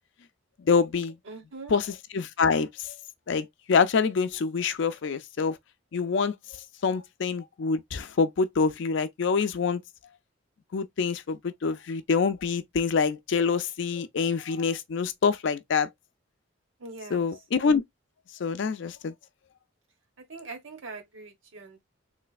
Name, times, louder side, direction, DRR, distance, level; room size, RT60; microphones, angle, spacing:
voice 1, 0.6-1.2 1.7-2.9 3.3-5.6 5.9-9.8 10.7-15.9 17.1-17.8 18.4-19.1, left 5 dB, 65° left, 0.4 m, -26 dB
voice 2, 1.2-1.8 16.8-17.3 20.2-21.8, right 3 dB, 75° right, 1.2 m, -42 dB
3.2 x 3.1 x 2.4 m
head